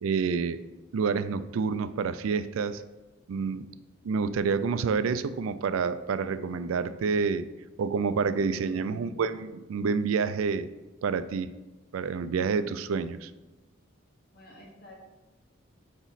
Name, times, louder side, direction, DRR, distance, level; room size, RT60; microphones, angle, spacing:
voice 1, 0.0-0.6 0.9-2.8 3.3-3.7 4.0-7.5 7.8-10.7 11.0-11.5 11.9-13.3, right 5 dB, 80° right, 13 dB, 0.3 m, -28 dB
voice 2, 8.3-9.2 14.3-14.9, equal, 45° left, -1 dB, 1.3 m, -50 dB
8.0 x 3.0 x 4.0 m, 1.1 s
head